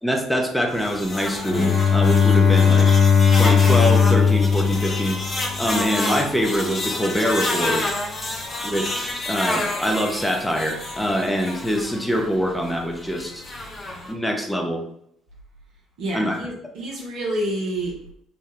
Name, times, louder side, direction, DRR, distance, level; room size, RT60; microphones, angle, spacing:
voice 1, 0.0-2.9 3.4-5.2 5.6-7.9 8.6-13.4 14.1-14.8 16.1-16.4, equal, 5° left, 2 dB, 0.7 m, -24 dB
sound 1, 0.7-14.1, left 2 dB, 35° left, 0.7 m, -30 dB
Bowed string instrument, 1.4-5.7, left 6 dB, 70° left, 0.9 m, -17 dB
voice 2, 16.0-18.0, right 1 dB, 65° right, -2 dB, 0.8 m, -28 dB
3.3 x 2.2 x 3.1 m, 0.72 s
figure-of-eight pair, 50°, 0 cm